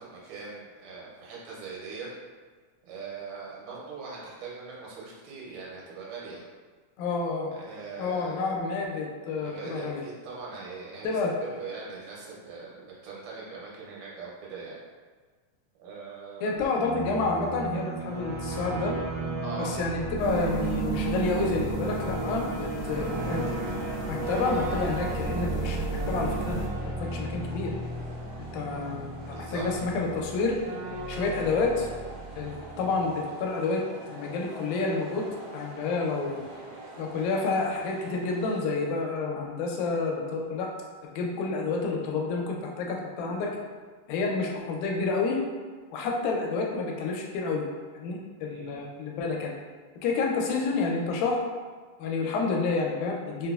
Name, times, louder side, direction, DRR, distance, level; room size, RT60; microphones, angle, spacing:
voice 1, 0.0-2.1 2.9-6.4 7.5-8.6 9.3-14.8 15.8-16.6 19.4-19.7 29.3-29.7 30.0-30.2 48.5-48.8, right 4 dB, 90° right, -4 dB, 2.3 m, -41 dB
voice 2, 7.0-7.5 8.0-10.0 11.0-11.3 16.4-18.9 19.6-23.7 24.1-26.6 27.1-27.7 28.5-30.6 31.1-31.9 32.3-33.8 34.1-35.3 35.5-36.4 37.0-40.7 41.0-43.6 44.1-45.4 45.9-47.6 47.9-49.6 50.0-51.4 52.0-53.5, left 4 dB, 85° left, 0 dB, 2.0 m, -29 dB
sound 1, 16.6-33.2, right 3 dB, 50° right, 1.3 m, -35 dB
sound 2, 20.2-26.7, right 3 dB, 70° left, 1.6 m, -33 dB
sound 3, 22.9-38.6, right 1 dB, 70° right, 2.0 m, -46 dB
5.0 x 2.0 x 2.3 m, 1.4 s
omnidirectional pair, 3.5 m